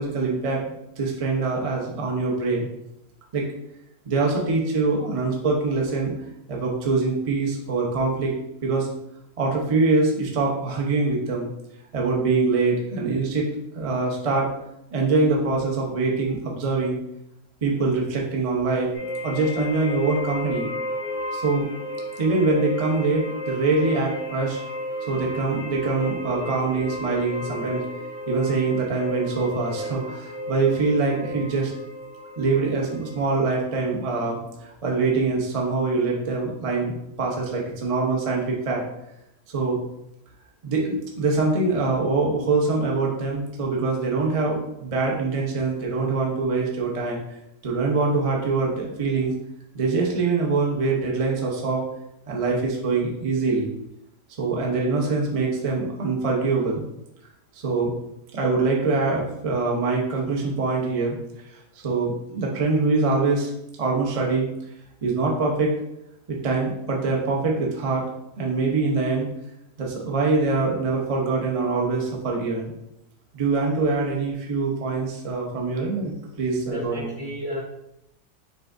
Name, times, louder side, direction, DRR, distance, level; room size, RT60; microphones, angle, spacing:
voice 1, 0.0-2.7 3.3-3.5 4.1-6.1 6.5-8.3 8.6-8.9 9.4-11.5 11.9-13.5 13.7-14.5 14.9-17.0 17.6-18.9 19.2-20.7 21.3-21.7 22.2-24.6 25.1-27.8 28.3-31.7 32.4-38.8 39.5-39.8 40.6-47.2 47.6-49.3 49.7-51.8 52.3-53.7 54.4-56.8 57.5-57.9 58.3-61.2 61.5-63.5 63.8-64.5 65.0-65.7 66.3-68.0 68.4-69.3 69.8-72.7 73.3-77.1, right 3 dB, 45° right, -1 dB, 0.4 m, -24 dB
sound 1, 18.9-33.4, equal, 55° left, 2.3 m, -33 dB
voice 2, 76.7-77.6, left 1 dB, 30° left, -7 dB, 0.7 m, -32 dB
5.6 x 3.8 x 2.5 m, 0.83 s
omnidirectional pair, 1.8 m